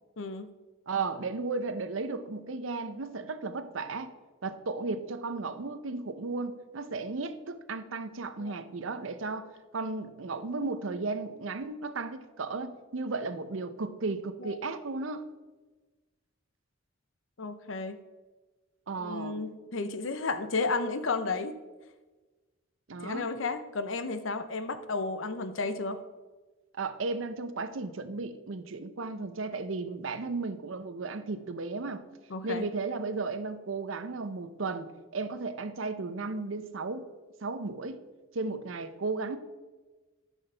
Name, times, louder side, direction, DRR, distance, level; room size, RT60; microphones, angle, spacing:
voice 1, 0.2-0.5 8.4-8.6 14.4-14.5 17.4-18.0 19.0-21.5 23.0-26.0 32.3-32.6, left 3 dB, 75° left, 10 dB, 0.7 m, -33 dB
voice 2, 0.9-4.1 4.4-15.3 18.9-19.4 22.9-23.3 26.7-32.0 32.4-37.1 37.4-38.0 38.3-39.4, right 3 dB, 85° right, 11 dB, 0.7 m, -35 dB
13.0 x 6.3 x 3.4 m, 1.3 s
head